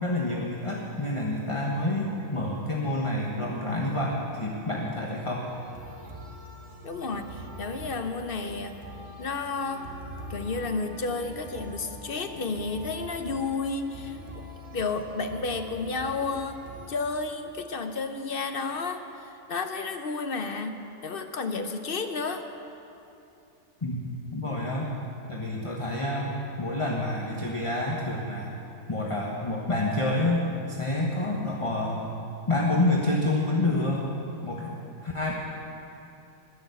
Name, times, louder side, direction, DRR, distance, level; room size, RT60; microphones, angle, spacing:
voice 1, 0.0-5.5 23.8-24.0 24.3-24.9 25.3-28.6 28.9-30.4 30.7-32.0 32.5-34.1 34.4-34.7 35.0-35.3, left 2 dB, 25° left, -2 dB, 1.2 m, -28 dB
sound 1, 5.5-16.9, equal, 60° right, 2.0 m, -43 dB
voice 2, 6.8-8.8 9.2-9.8 10.3-14.2 14.7-16.6 16.9-19.2 19.5-22.4, left 4 dB, 50° left, 7 dB, 0.9 m, -31 dB
21.0 x 7.0 x 8.1 m, 2.8 s
omnidirectional pair, 1.4 m